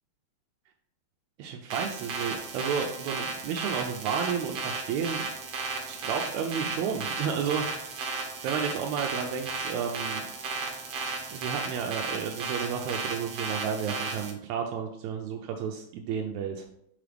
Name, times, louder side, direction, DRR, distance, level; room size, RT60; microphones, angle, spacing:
voice 1, 1.4-5.3 5.9-7.9 8.4-10.2 11.3-16.7, right 7 dB, 80° right, 4 dB, 1.9 m, -32 dB
sound 1, 1.7-14.3, right 4 dB, 65° right, 1.7 m, -34 dB
Acoustic guitar / Strum, 6.6-11.4, left 1 dB, 90° left, 2.4 m, -55 dB
6.2 x 4.9 x 3.4 m, 0.75 s
omnidirectional pair, 3.3 m